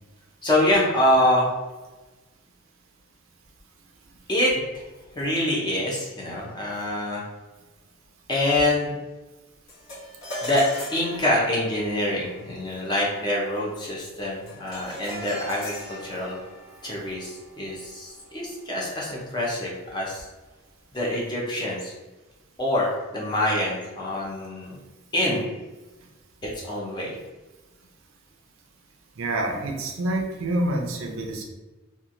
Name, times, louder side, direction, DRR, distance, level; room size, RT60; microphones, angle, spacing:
voice 1, 0.4-1.5 4.3-4.8 5.1-7.2 8.3-9.0 10.4-10.6 10.9-16.4 16.8-20.3 20.9-21.9 22.6-24.8 25.1-25.5 26.6-27.2, left 1 dB, 20° left, -4 dB, 0.5 m, -25 dB
sound 1, 9.7-19.2, equal, 65° left, 1.1 m, -40 dB
voice 2, 29.2-31.4, right 1 dB, 70° right, 2 dB, 0.5 m, -27 dB
2.9 x 2.3 x 2.5 m, 1.2 s
head